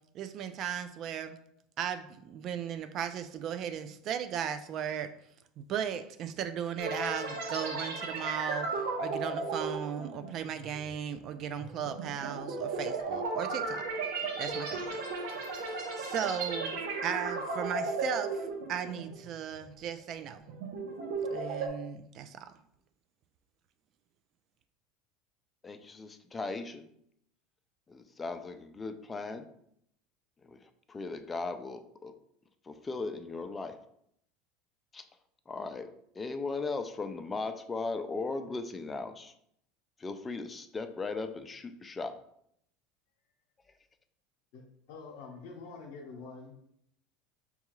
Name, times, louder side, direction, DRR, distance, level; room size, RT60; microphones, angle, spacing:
voice 1, 0.1-1.4 1.8-5.1 5.6-13.9 14.4-14.9 15.3-15.7 16.0-16.8 17.0-20.4 21.3-22.5, right 8 dB, 50° right, 10 dB, 0.4 m, -36 dB
sound 1, 6.8-19.3 19.6-19.9 20.4-21.7, right 3 dB, 75° right, 0.8 m, -35 dB
voice 2, 25.6-26.9 27.9-29.5 30.4-32.1 32.6-33.8 34.9-35.1 35.5-35.9 36.1-39.3 40.0-42.2, left 3 dB, 20° left, 8 dB, 0.4 m, -37 dB
voice 3, 44.9-46.5, left 4 dB, 70° left, -2 dB, 0.8 m, -46 dB
5.4 x 2.3 x 3.0 m, 0.72 s
supercardioid pair, 110°, 0 cm